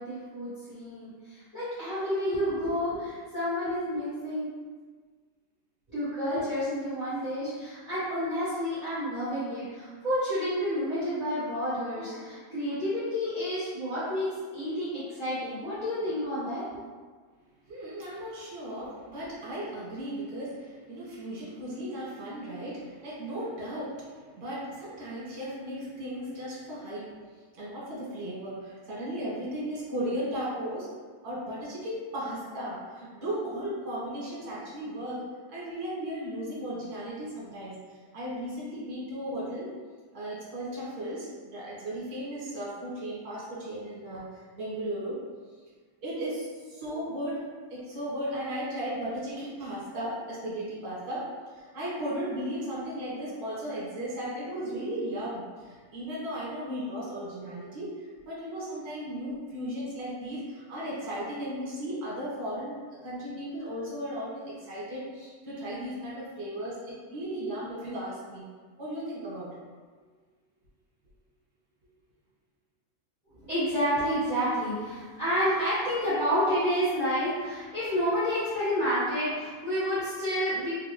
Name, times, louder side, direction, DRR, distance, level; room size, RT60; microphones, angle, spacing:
voice 1, 0.0-4.5 5.9-16.8 73.4-80.7, equal, 25° right, -13 dB, 1.4 m, -30 dB
voice 2, 17.7-27.2 27.5-30.9 31.2-35.2 35.5-37.8 38.1-39.7 40.1-44.2 44.6-45.2 46.0-47.4 47.7-51.3 51.5-68.4 68.8-69.5, equal, 85° right, -7 dB, 1.9 m, -36 dB
3.8 x 2.5 x 3.0 m, 1.5 s
omnidirectional pair, 1.6 m